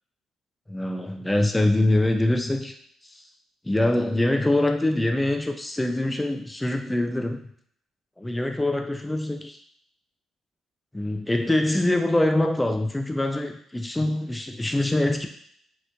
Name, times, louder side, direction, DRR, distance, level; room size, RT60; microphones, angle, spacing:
voice 1, 0.7-2.7 3.1-3.2 3.6-7.4 8.2-9.6 10.9-15.3, left 1 dB, 10° left, 5 dB, 0.4 m, -24 dB
3.0 x 2.6 x 3.3 m, 0.63 s
cardioid pair, 90°, 0 cm